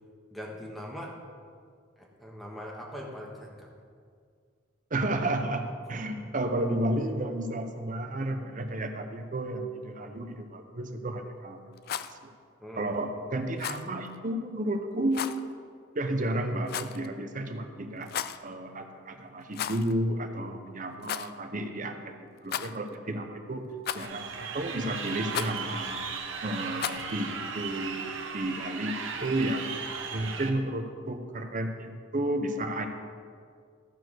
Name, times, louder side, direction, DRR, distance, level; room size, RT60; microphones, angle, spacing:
voice 1, 0.3-1.1 2.0-3.7 10.0-10.1 12.6-13.0 20.4-20.6 27.1-27.3, equal, ahead, -2 dB, 1.4 m, -42 dB
voice 2, 4.9-11.7 12.0-12.3 12.8-15.5 15.9-18.1 18.4-23.6 23.9-26.1 26.4-28.1 28.3-29.7 30.1-32.9, right 1 dB, 45° right, 6 dB, 0.8 m, -32 dB
Rattle, 11.7-12.1 13.6-13.9 15.1-15.4 16.7-17.1 18.0-18.4 19.5-19.9 20.2-20.3 21.0-21.3 22.4-22.9 23.8-24.3 25.3-25.6 26.8-27.1, left 9 dB, 55° left, 0.3 m, -34 dB
Crowd, 24.0-30.5, right 5 dB, 85° right, 1.0 m, -36 dB
13.5 x 4.7 x 6.2 m, 2.1 s
head